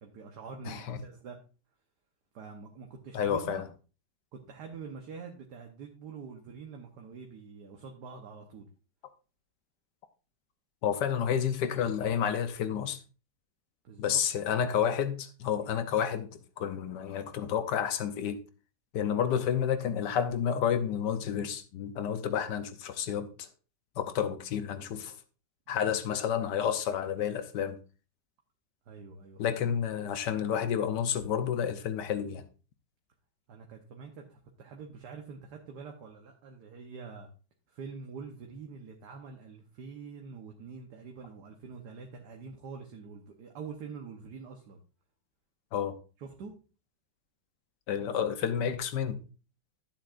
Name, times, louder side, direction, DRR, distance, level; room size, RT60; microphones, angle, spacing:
voice 1, 0.0-1.4 2.3-3.6 4.3-8.7 13.8-14.2 28.9-29.6 33.5-37.3 37.7-44.8 46.2-46.5, right 5 dB, 65° right, 1.5 m, -45 dB
voice 2, 0.7-1.0 3.1-3.6 10.8-13.0 14.0-16.3 16.6-18.4 18.9-23.5 24.0-25.1 25.7-27.8 29.4-32.4 45.7-45.9 47.9-49.2, left 8 dB, 70° left, 1.3 m, -30 dB
11.5 x 7.6 x 2.5 m
omnidirectional pair, 2.0 m